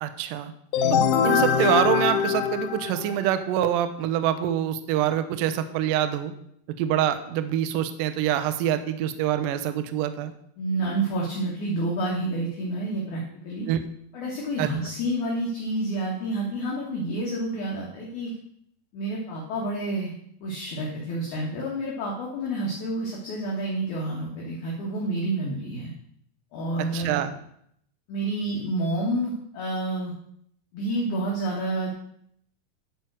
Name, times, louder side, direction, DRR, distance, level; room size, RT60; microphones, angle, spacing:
voice 1, 0.0-0.5 0.9-6.3 6.8-10.3 13.7-13.8 14.6-14.7 26.9-27.3, right 11 dB, 80° right, 9 dB, 2.0 m, -25 dB
sound 1, 0.7-3.4, left 7 dB, 85° left, 1.8 m, -23 dB
voice 2, 10.6-13.7 14.1-18.3 18.9-20.1 20.4-25.9 26.5-27.2 28.1-30.1 30.7-31.9, right 1 dB, 60° left, -3 dB, 2.5 m, -29 dB
11.0 x 4.7 x 6.2 m, 0.70 s
omnidirectional pair, 4.6 m